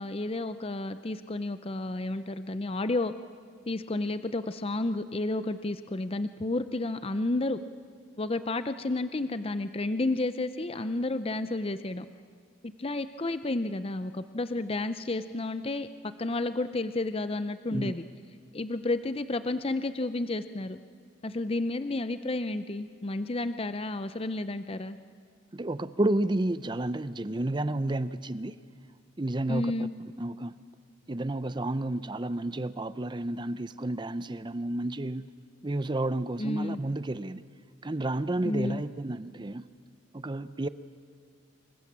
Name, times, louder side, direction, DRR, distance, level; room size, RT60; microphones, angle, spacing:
voice 1, 0.0-3.1 3.7-7.6 8.2-12.1 12.8-18.0 18.5-20.8 21.2-25.0 29.5-29.9 36.4-36.8 38.4-38.8, left 2 dB, 30° left, 11 dB, 0.6 m, -31 dB
voice 2, 25.5-28.6 29.2-29.9 30.2-30.6 31.1-35.3 35.6-37.4 37.8-39.7 40.1-40.7, right 1 dB, 20° right, 14 dB, 0.6 m, -31 dB
26.5 x 24.0 x 7.4 m, 2.1 s
head